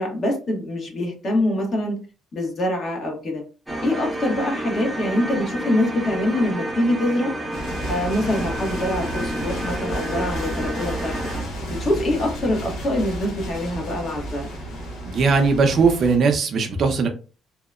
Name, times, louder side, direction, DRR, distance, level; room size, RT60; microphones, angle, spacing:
voice 1, 0.0-2.0 2.3-3.4 3.8-7.3 7.9-11.2 11.7-14.5, left 1 dB, 45° left, 1 dB, 1.0 m, -24 dB
sound 1, 3.7-11.4, right 1 dB, 5° right, 0.7 m, -30 dB
sound 2, 7.5-16.2, right 1 dB, 85° left, 1.0 m, -32 dB
voice 2, 15.0-17.1, right 4 dB, 55° right, 5 dB, 0.5 m, -19 dB
2.7 x 2.0 x 2.3 m, 0.34 s
cardioid pair, 115°, 0 cm